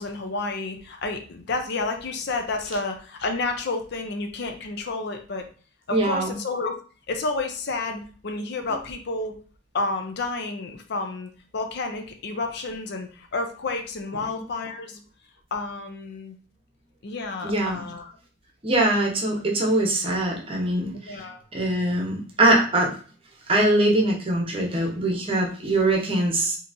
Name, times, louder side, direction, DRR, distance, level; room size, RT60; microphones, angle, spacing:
voice 1, 0.0-5.5 5.9-6.8 7.1-9.4 9.7-15.0 15.5-16.3 17.0-18.1 21.1-21.4, left 3 dB, 55° left, 5 dB, 0.5 m, -30 dB
voice 2, 5.9-6.4 17.4-17.8 18.6-21.2 21.5-22.9 23.5-26.6, right 1 dB, 25° right, -1 dB, 0.8 m, -22 dB
3.7 x 2.8 x 2.5 m, 0.41 s
head